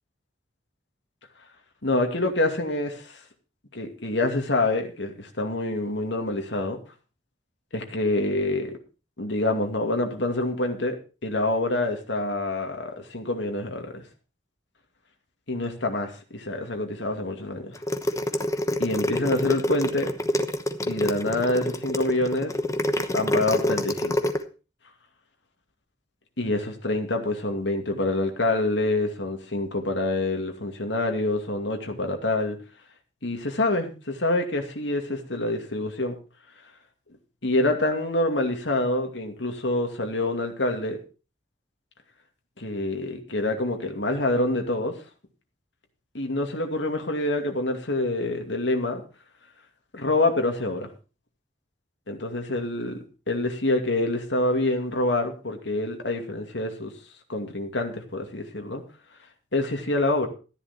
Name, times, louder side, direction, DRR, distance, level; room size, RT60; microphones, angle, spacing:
voice 1, 1.8-3.2 3.7-6.8 7.7-8.8 9.2-11.0 11.2-14.0 15.5-17.7 18.8-20.1 20.9-22.5 23.0-24.2 26.4-32.6 33.2-36.2 37.4-41.0 42.6-44.9 46.1-49.0 49.9-50.9 52.1-56.9 57.3-58.8 59.5-60.3, left 2 dB, 90° left, 3 dB, 2.4 m, -26 dB
sound 1, 17.7-24.4, left 1 dB, 15° left, 1.0 m, -26 dB
14.0 x 10.5 x 4.4 m, 0.33 s
head